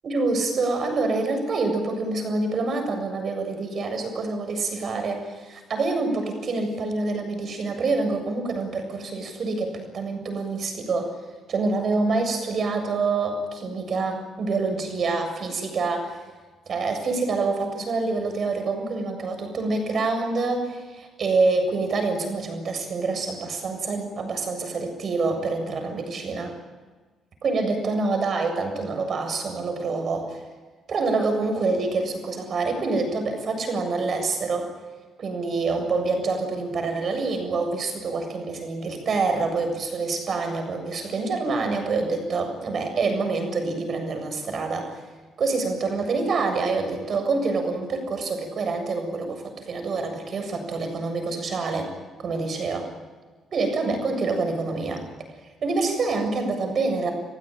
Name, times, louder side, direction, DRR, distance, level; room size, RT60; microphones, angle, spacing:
voice 1, 0.0-11.1 11.5-16.2 16.7-26.6 27.4-30.4 30.9-34.7 35.2-45.0 45.4-51.9 52.2-52.9 53.5-55.0 55.6-57.1, right 3 dB, 55° right, 5 dB, 7.5 m, -26 dB
30.0 x 16.0 x 9.2 m, 1.3 s
cardioid pair, 90°, 0 cm